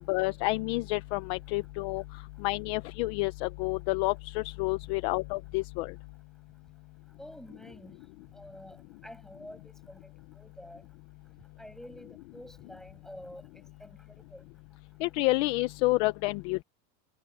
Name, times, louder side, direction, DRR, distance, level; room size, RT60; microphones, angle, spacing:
voice 1, 0.1-2.0 2.4-5.9 15.0-16.6, left 22 dB, 40° left, 0.7 m, -29 dB
voice 2, 7.2-8.0 8.3-8.8 9.0-10.8 11.6-13.4 13.8-13.9 14.3-14.5, equal, ahead, 6.7 m, -48 dB
supercardioid pair, 165°, 49 cm